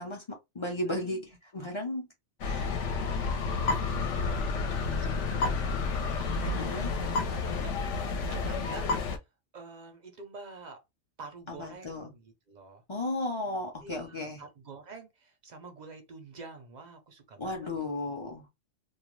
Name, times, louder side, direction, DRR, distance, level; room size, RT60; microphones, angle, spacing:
voice 1, 0.0-2.1 2.4-2.7 6.6-6.9 11.5-12.1 12.9-14.4 17.4-18.4, left 1 dB, 40° left, 0.4 m, -35 dB
voice 2, 0.8-1.4 3.3-3.7 4.1-5.1 5.3-7.0 7.3-7.7 8.0-9.0 9.5-10.8 11.2-12.8 13.8-17.9, right 3 dB, 50° right, 0.5 m, -47 dB
sound 1, 2.4-9.2, left 4 dB, 70° left, 0.9 m, -30 dB
2.3 x 2.1 x 3.0 m
omnidirectional pair, 1.3 m